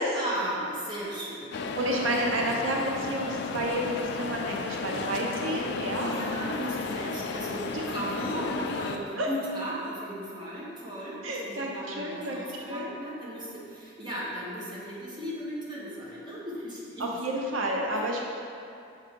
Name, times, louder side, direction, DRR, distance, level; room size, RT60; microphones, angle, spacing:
voice 1, 0.1-1.6 6.0-17.1 17.9-18.0, right 1 dB, 25° right, -7 dB, 1.2 m, -36 dB
sound 1, 1.5-9.0, left 4 dB, 60° left, 0.3 m, -33 dB
voice 2, 1.7-6.2 7.6-8.0 9.1-9.3 11.2-12.9 17.0-18.3, right 1 dB, 85° right, -1 dB, 0.7 m, -30 dB
6.6 x 3.2 x 5.1 m, 2.5 s
head